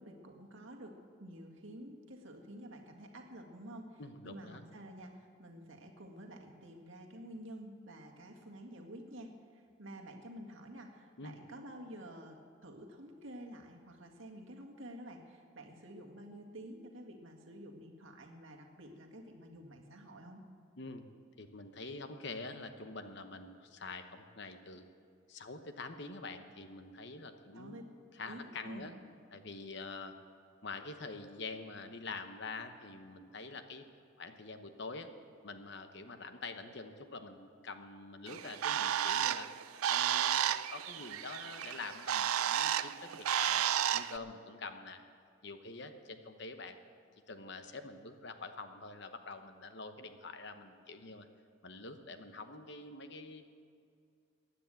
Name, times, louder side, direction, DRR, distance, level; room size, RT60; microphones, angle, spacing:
voice 1, 0.0-20.4 27.5-27.8 28.3-28.9, right 1 dB, 65° right, 2 dB, 1.8 m, -50 dB
voice 2, 4.0-4.6 11.2-11.4 20.8-21.1 21.4-24.9 25.3-27.8 28.1-29.0 29.3-30.2 30.6-33.8 34.2-35.1 35.4-39.5 39.9-45.0 45.4-46.8 47.3-51.3 51.6-53.4, left 3 dB, 55° left, 8 dB, 0.9 m, -46 dB
Bird, 38.3-44.2, right 10 dB, 90° right, 0.4 m, -32 dB
15.5 x 9.9 x 7.7 m, 2.3 s
head